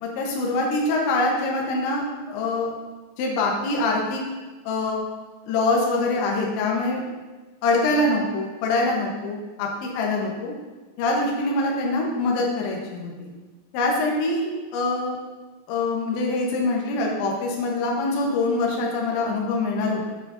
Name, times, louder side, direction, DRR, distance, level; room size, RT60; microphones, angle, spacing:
voice 1, 0.0-2.7 3.2-4.2 4.7-5.0 5.5-7.0 7.6-10.5 11.0-13.3 13.7-15.2 15.7-20.1, left 2 dB, 70° left, -1 dB, 3.0 m, -24 dB
8.3 x 7.5 x 2.6 m, 1.3 s
omnidirectional pair, 6.0 m